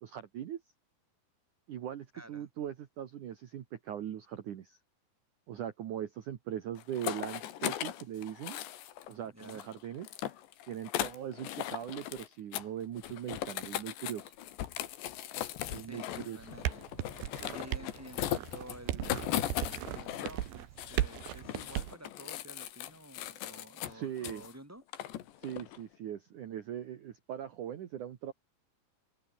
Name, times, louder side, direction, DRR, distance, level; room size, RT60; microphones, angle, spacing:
voice 1, 0.0-0.6 1.7-4.8 5.5-8.6 9.1-10.1 10.7-14.3 15.7-16.4 23.9-24.4 25.4-28.3, right 10 dB, 55° right, 2.6 m, -40 dB
voice 2, 2.1-2.5 9.2-9.7 15.9-16.9 17.5-24.8, right 1 dB, 5° right, 3.9 m, -51 dB
sound 1, 6.8-9.1 9.4-12.3 12.5-12.7 13.0-20.5 20.8-24.5 24.9-25.8, left 12 dB, 85° left, 4.0 m, -38 dB
sound 2, 16.4-21.9, right 13 dB, 90° right, 3.8 m, -36 dB
omnidirectional pair, 4.9 m